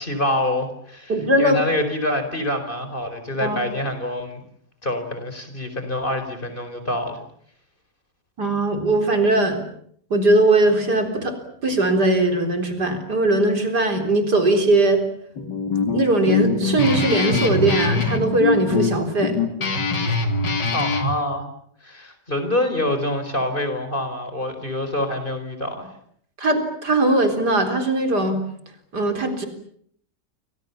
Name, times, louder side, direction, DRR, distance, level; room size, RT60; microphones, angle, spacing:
voice 1, 0.0-4.4 4.8-7.2 20.7-21.4 21.8-25.9, left 1 dB, 30° left, 8 dB, 4.8 m, -26 dB
voice 2, 1.1-1.6 3.4-3.6 8.4-9.6 10.1-15.0 15.9-19.4 26.4-28.4 28.9-29.5, right 2 dB, 65° right, 6 dB, 4.5 m, -20 dB
Guitar, 15.4-21.1, left 3 dB, 80° left, 3.3 m, -23 dB
29.5 x 25.5 x 7.1 m, 0.66 s
omnidirectional pair, 1.9 m